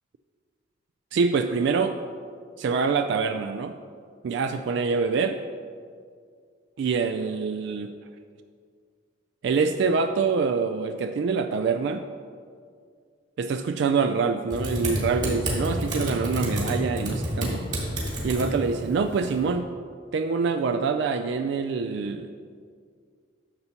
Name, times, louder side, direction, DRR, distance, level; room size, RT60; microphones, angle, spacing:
voice 1, 1.1-2.0 2.6-3.7 4.2-5.4 6.8-7.9 9.4-12.0 13.4-17.6 18.2-19.7 20.1-22.3, right 5 dB, 60° right, 8 dB, 0.3 m, -25 dB
Typing, 14.5-19.5, equal, 40° right, 2.0 m, -29 dB
11.0 x 6.9 x 2.9 m, 2.1 s
head